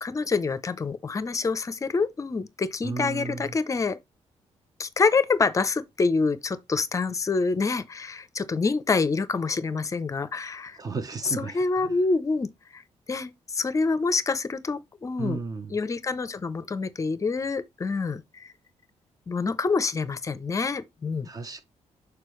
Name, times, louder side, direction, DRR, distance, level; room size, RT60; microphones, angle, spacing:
voice 1, 0.0-4.0 4.8-10.8 11.2-12.8 13.1-15.4 15.7-18.5 19.3-21.3, left 4 dB, 25° left, 0.6 m, -27 dB
voice 2, 2.8-3.5 10.8-12.0 15.2-15.8 21.3-21.6, right 4 dB, 30° right, 0.7 m, -34 dB
6.7 x 4.7 x 3.1 m
cardioid pair, 140°, 12 cm